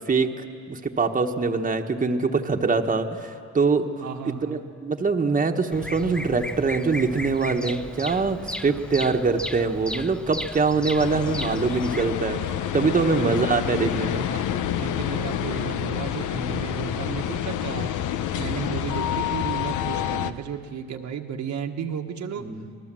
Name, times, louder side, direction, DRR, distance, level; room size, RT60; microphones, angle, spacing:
voice 1, 0.1-14.3 18.4-18.6 22.4-22.7, right 4 dB, 25° right, 4 dB, 1.3 m, -24 dB
voice 2, 4.0-4.6 13.1-13.4 14.3-14.4 14.8-17.9 18.3-22.5, right 7 dB, 70° right, 3 dB, 1.4 m, -33 dB
Bird vocalization bird call bird song, 5.7-12.1, left 1 dB, 5° left, 0.7 m, -35 dB
sound 1, 11.0-20.3, left 10 dB, 80° left, 0.9 m, -28 dB
26.5 x 19.5 x 7.6 m, 2.2 s
cardioid pair, 90°, 30 cm